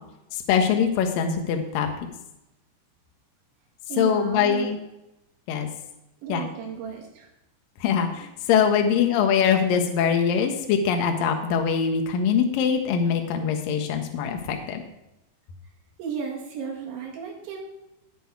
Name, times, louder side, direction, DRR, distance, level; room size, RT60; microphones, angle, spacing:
voice 1, 0.3-1.9 4.0-4.8 5.5-5.7 6.3-6.4 7.8-14.8, left 7 dB, 70° left, 5 dB, 2.2 m, -23 dB
voice 2, 3.9-4.7 6.2-7.3 16.0-17.7, right 7 dB, 70° right, -1 dB, 4.1 m, -34 dB
13.0 x 8.6 x 4.7 m, 0.90 s
omnidirectional pair, 5.7 m